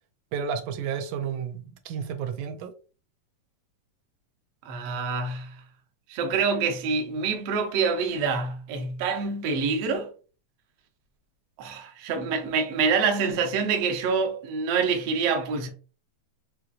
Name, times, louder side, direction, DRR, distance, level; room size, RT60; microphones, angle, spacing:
voice 1, 0.3-2.8, right 7 dB, 85° right, 2.0 m, -32 dB
voice 2, 4.6-5.6 6.1-10.1 11.6-15.7, right 5 dB, 65° right, 1.6 m, -26 dB
5.8 x 3.1 x 2.4 m
omnidirectional pair, 3.5 m